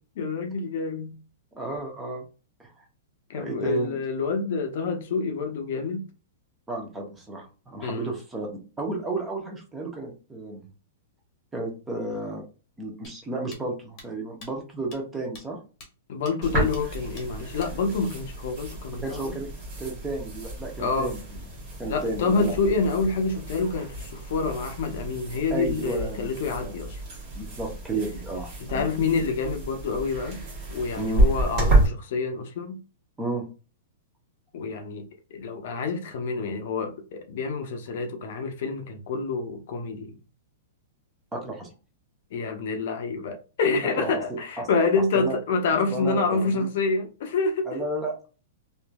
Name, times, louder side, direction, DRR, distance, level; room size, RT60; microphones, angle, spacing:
voice 1, 0.2-1.2 3.3-6.1 7.8-8.1 16.1-19.4 20.8-21.1 21.9-27.0 28.7-30.4 30.7-32.8 34.5-40.2 42.3-47.7, left 4 dB, 60° left, 0.6 m, -27 dB
voice 2, 1.5-2.2 2.6-2.8 3.3-4.0 6.7-8.5 8.8-10.7 11.5-12.4 12.8-15.6 19.0-19.5 19.8-21.4 21.8-22.5 25.5-26.3 26.6-26.7 27.3-28.9 31.0-31.3 33.2-33.5 41.3-41.7 44.0-44.2 44.6-44.7 45.1-45.4 45.9-46.7 47.7-48.3, right 2 dB, 10° right, 0.8 m, -32 dB
sound 1, 13.0-13.1 13.5-13.6 14.0-14.1 14.4-14.5 14.9-15.0 15.3-15.4 15.8-15.9 16.3-16.4 16.7-16.8 17.2-17.3 17.6-17.7, left 2 dB, 30° left, 1.0 m, -45 dB
sound 2, 16.4-31.9, right 2 dB, 35° right, 1.5 m, -30 dB
2.9 x 2.5 x 2.2 m
hypercardioid pair, 150°, 0 cm